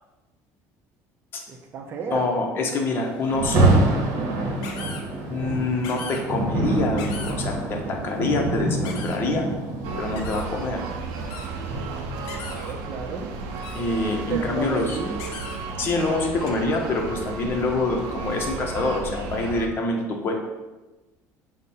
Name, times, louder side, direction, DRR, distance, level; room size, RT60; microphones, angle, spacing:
voice 1, 1.5-2.4 12.4-13.3 14.3-15.2, right 4 dB, 35° right, 3 dB, 0.6 m, -32 dB
voice 2, 2.1-3.7 5.3-9.5 10.0-10.8 13.7-15.0 15.8-20.3, left 2 dB, 35° left, 2 dB, 0.7 m, -26 dB
Rain, 3.2-12.3, right 2 dB, 60° right, 0.9 m, -26 dB
sound 1, 4.6-5.0 5.8-6.2 7.0-7.3 8.8-9.2 10.2-10.4 11.3-11.5 12.2-12.7 13.6-13.8 15.2-15.6 16.5-16.6, left 5 dB, 85° left, 0.6 m, -38 dB
sound 2, 9.8-19.7, right 4 dB, 85° right, 0.5 m, -33 dB
4.9 x 2.1 x 4.3 m, 1.1 s
cardioid pair, 150°, 6 cm